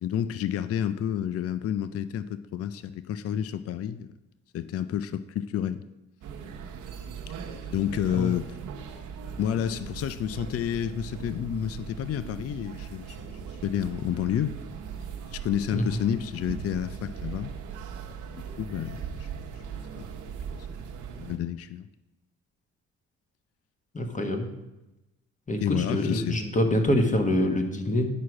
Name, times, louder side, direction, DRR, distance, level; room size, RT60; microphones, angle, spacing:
voice 1, 0.0-4.1 4.5-5.8 7.3-7.4 7.6-8.6 9.4-13.2 13.4-14.5 15.3-17.5 18.2-19.6 20.5-20.7 21.2-21.9 24.0-24.1 25.6-26.4, left 10 dB, 50° left, 0.5 m, -30 dB
sound 1, 6.2-21.4, right 6 dB, 85° right, 1.1 m, -39 dB
voice 2, 23.9-24.5 25.5-28.1, left 1 dB, 25° left, 1.3 m, -25 dB
10.0 x 4.8 x 6.0 m
cardioid pair, 90°, 30 cm